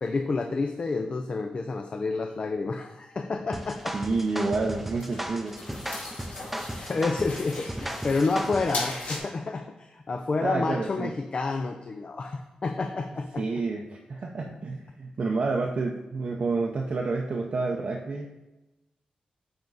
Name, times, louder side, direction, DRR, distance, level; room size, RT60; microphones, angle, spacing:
voice 1, 0.0-3.8 6.7-13.4, left 3 dB, 40° left, 5 dB, 0.5 m, -29 dB
sound 1, 3.5-8.8, right 1 dB, 5° right, 0.6 m, -36 dB
sound 2, 3.6-9.2, left 2 dB, 65° left, 2.1 m, -39 dB
voice 2, 3.9-5.5 10.4-11.1 13.4-18.3, right 3 dB, 50° right, 0 dB, 0.6 m, -29 dB
8.8 x 3.6 x 4.0 m, 1.0 s
wide cardioid pair, 100°, 3 cm